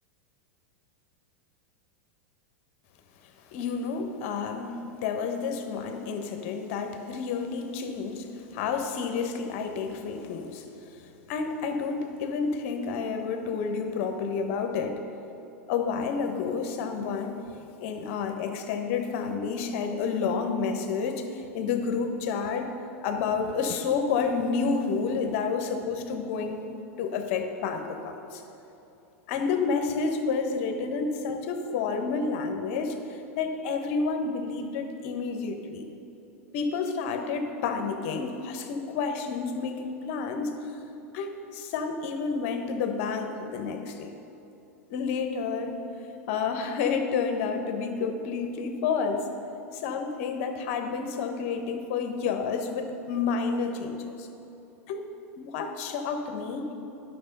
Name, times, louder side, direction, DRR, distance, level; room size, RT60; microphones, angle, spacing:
voice 1, 3.5-10.7 11.3-15.0 15.7-17.4 17.8-22.7 23.0-26.6 27.0-28.4 29.3-35.8 36.5-40.5 41.1-44.1 44.9-45.8 46.3-49.3 49.7-54.3 54.9-55.1 55.4-56.7, left 5 dB, 55° left, 5 dB, 1.1 m, -30 dB
11.0 x 6.0 x 5.3 m, 2.9 s
hypercardioid pair, 95°, 8 cm